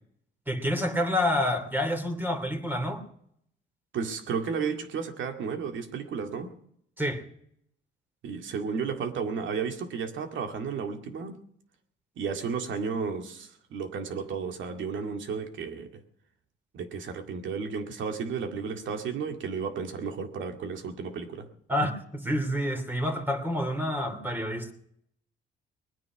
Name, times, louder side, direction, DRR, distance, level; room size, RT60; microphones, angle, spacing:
voice 1, 0.5-3.0 7.0-7.2 21.7-24.7, left 1 dB, 10° right, 6 dB, 2.9 m, -28 dB
voice 2, 3.9-6.5 8.2-11.4 12.2-15.9 16.7-21.5, right 5 dB, 75° right, 6 dB, 2.1 m, -33 dB
21.0 x 9.5 x 6.1 m, 0.70 s
cardioid pair, 90°, 20 cm